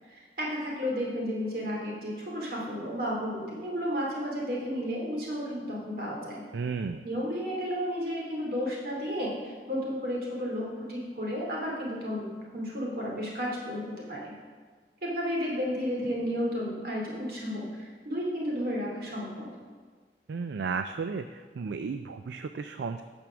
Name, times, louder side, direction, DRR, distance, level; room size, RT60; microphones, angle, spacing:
voice 1, 0.1-6.4 7.0-14.3 15.0-19.5, equal, 55° right, -3 dB, 2.6 m, -32 dB
voice 2, 6.5-7.0 20.3-23.0, right 5 dB, 75° right, 9 dB, 0.3 m, -34 dB
8.9 x 6.3 x 6.1 m, 1.5 s
head